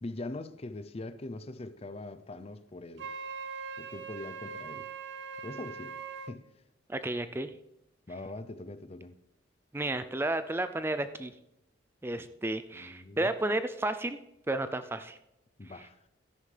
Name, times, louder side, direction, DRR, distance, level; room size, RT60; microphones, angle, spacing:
voice 1, 0.0-3.1 3.8-4.9 5.4-6.0 6.3-6.5 8.1-9.2 12.2-12.3 12.7-13.3 15.6-16.1, left 2 dB, 35° left, 0.6 m, -42 dB
Wind instrument woodwind instrument, 3.0-6.4, right 5 dB, 70° right, 0.6 m, -41 dB
voice 2, 6.9-7.6 9.7-11.3 12.0-14.2 14.5-15.2, right 2 dB, 10° right, 0.4 m, -32 dB
13.0 x 10.5 x 3.4 m
head